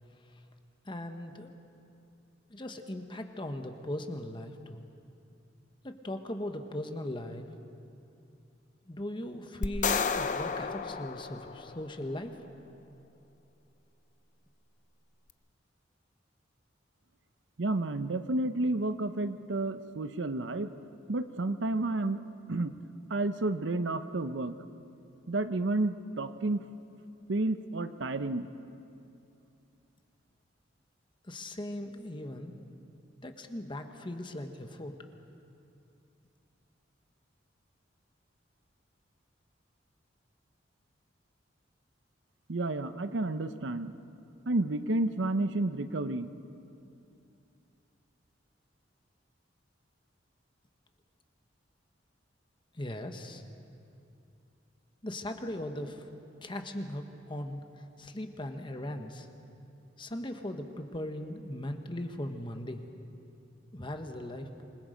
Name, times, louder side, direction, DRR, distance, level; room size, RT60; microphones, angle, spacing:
voice 1, 0.8-1.5 2.5-4.9 5.8-7.5 8.9-12.4 31.2-32.5 33.2-35.0 52.7-53.4 55.0-56.1 56.4-59.3 60.0-62.9 63.7-64.7, left 1 dB, 25° left, 6 dB, 1.2 m, -39 dB
sound 1, 9.6-12.0, left 5 dB, 40° left, 0.6 m, -32 dB
voice 2, 17.6-20.7 21.1-22.2 22.5-22.7 23.1-24.5 25.3-26.7 27.3-28.5 42.5-44.0 44.5-46.3, right 2 dB, 70° right, 11 dB, 0.8 m, -31 dB
27.0 x 21.0 x 5.2 m, 2.7 s
head